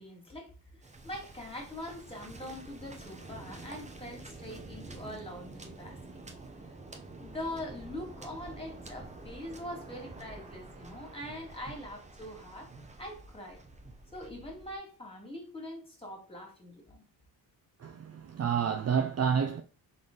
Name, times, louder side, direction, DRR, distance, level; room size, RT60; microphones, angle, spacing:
voice 1, 0.0-6.0 7.2-12.7 13.0-13.6 14.1-17.0, left 1 dB, 10° left, 2.3 m, -43 dB
Waves surf, 0.8-14.8, right 2 dB, 15° right, 0.9 m, -48 dB
voice 2, 17.8-19.6, right 7 dB, 35° right, 0.6 m, -29 dB
3.9 x 3.5 x 3.8 m
supercardioid pair, 75°, 44 cm